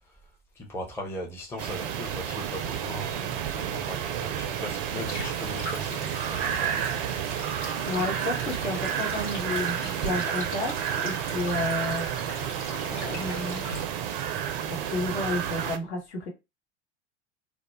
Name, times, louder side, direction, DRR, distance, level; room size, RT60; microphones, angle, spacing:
voice 1, 0.6-7.2, left 1 dB, 5° left, 0.6 m, -39 dB
sound 1, 1.6-15.8, right 9 dB, 50° right, 0.4 m, -31 dB
Stream, 5.0-13.8, left 1 dB, 90° left, 1.0 m, -41 dB
voice 2, 7.9-12.1 12.9-13.7 14.7-16.3, left 2 dB, 65° left, 1.0 m, -31 dB
2.2 x 2.1 x 2.9 m
figure-of-eight pair, 75°, 35 cm